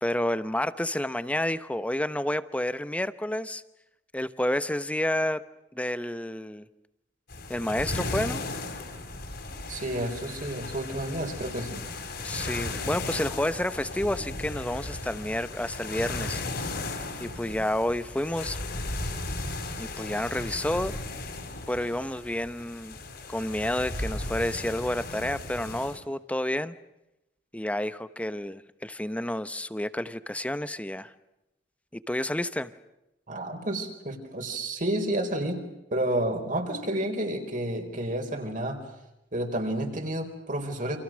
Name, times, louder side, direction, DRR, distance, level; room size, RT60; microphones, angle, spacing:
voice 1, 0.0-3.6 4.1-5.4 5.7-6.7 7.5-8.4 12.2-16.4 17.2-18.6 19.8-20.9 21.7-23.0 23.3-26.7 27.5-31.1 31.9-32.7, left 1 dB, 10° left, 14 dB, 0.9 m, -30 dB
sound 1, 7.3-26.0, left 2 dB, 60° left, 5.2 m, -36 dB
voice 2, 9.7-11.9 33.3-35.6 35.9-38.8 39.3-41.0, right 1 dB, 45° right, 4 dB, 4.8 m, -30 dB
Thump thud, 20.8-21.4 24.1-24.6, equal, 15° right, 2.8 m, -43 dB
29.5 x 27.0 x 6.4 m, 0.90 s
head